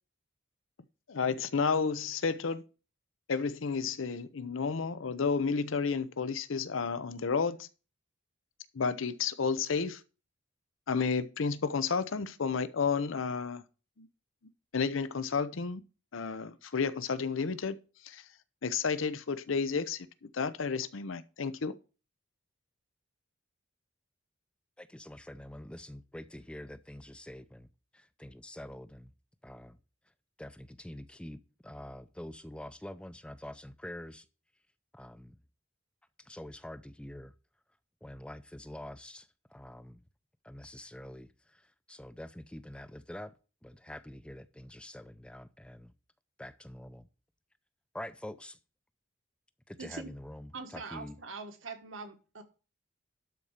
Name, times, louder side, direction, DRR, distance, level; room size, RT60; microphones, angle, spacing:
voice 1, 1.1-2.6 3.3-7.7 8.7-10.0 10.9-13.6 14.0-14.1 14.7-15.8 16.1-17.8 18.0-18.2 18.6-21.7, left 5 dB, 80° left, 0.7 m, -31 dB
voice 2, 24.8-27.7 27.9-29.1 29.4-29.8 30.4-34.2 34.9-35.4 36.3-37.3 38.0-40.0 40.4-41.3 41.9-43.3 43.6-45.9 46.4-47.1 47.9-48.6 49.7-51.2, left 1 dB, 5° left, 0.5 m, -46 dB
voice 3, 49.8-50.1 50.5-52.4, right 4 dB, 75° right, 1.6 m, -43 dB
12.0 x 4.3 x 6.5 m
head